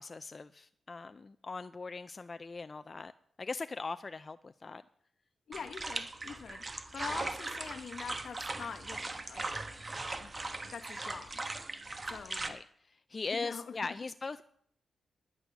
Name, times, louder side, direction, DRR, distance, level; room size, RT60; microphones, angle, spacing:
voice 1, 0.0-3.1 3.4-4.8 12.5-14.4, left 4 dB, 35° left, 11 dB, 0.5 m, -40 dB
voice 2, 5.5-6.7 6.9-9.5 10.2-10.3 10.7-11.4 12.0-12.6 13.3-13.9, left 6 dB, 65° left, 10 dB, 1.0 m, -44 dB
sound 1, 5.5-12.5, right 2 dB, 30° right, 1.3 m, -39 dB
11.0 x 9.5 x 7.0 m, 0.63 s
cardioid pair, 90°, 0 cm